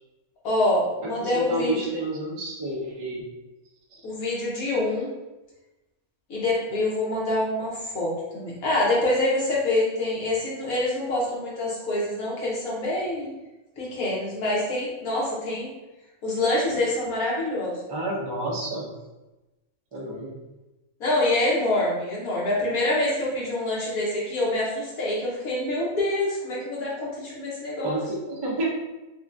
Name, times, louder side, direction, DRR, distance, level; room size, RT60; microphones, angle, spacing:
voice 1, 0.4-1.7 4.0-5.1 6.3-13.3 13.8-15.7 16.2-17.8 21.0-28.0, left 1 dB, 75° left, -5 dB, 1.6 m, -26 dB
voice 2, 1.2-3.3 3.9-4.0 17.9-18.9 19.9-20.3 27.8-28.0 28.3-28.7, right 1 dB, 30° right, -3 dB, 0.5 m, -30 dB
5.4 x 2.3 x 2.6 m, 1.0 s
omnidirectional pair, 1.5 m